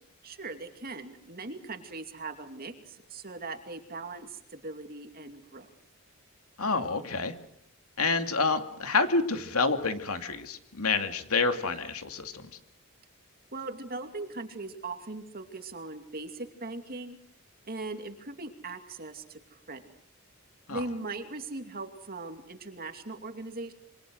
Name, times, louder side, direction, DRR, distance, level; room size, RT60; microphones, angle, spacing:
voice 1, 0.2-5.7 13.5-17.2 17.6-19.9 20.7-23.7, right 3 dB, 45° right, 6 dB, 2.6 m, -40 dB
voice 2, 6.6-7.3 8.0-12.5 20.7-20.8, left 4 dB, 80° left, 7 dB, 2.6 m, -28 dB
27.5 x 24.5 x 6.4 m, 0.68 s
head